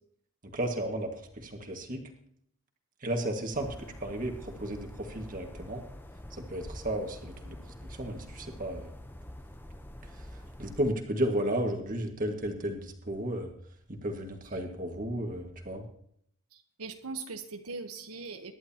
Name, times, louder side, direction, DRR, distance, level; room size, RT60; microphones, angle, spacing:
voice 1, 0.4-2.0 3.0-5.8 6.3-7.6 7.8-8.9 10.6-13.5 13.9-15.8, right 1 dB, 35° right, 3 dB, 1.8 m, -33 dB
sound 1, 3.5-10.9, left 1 dB, 10° left, 0.7 m, -46 dB
voice 2, 16.5-18.5, right 4 dB, 80° right, 5 dB, 1.1 m, -41 dB
23.5 x 11.0 x 2.9 m, 0.68 s
head